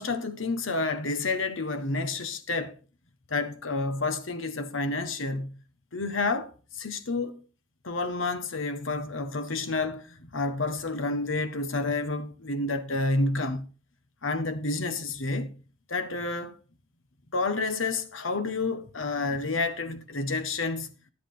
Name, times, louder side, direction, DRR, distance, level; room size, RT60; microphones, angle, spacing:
voice 1, 0.0-2.8 3.3-5.5 5.9-7.4 7.8-13.6 14.2-15.5 15.9-16.5 17.3-20.9, left 3 dB, 85° left, 1.3 m, -29 dB
11.0 x 10.5 x 3.9 m
head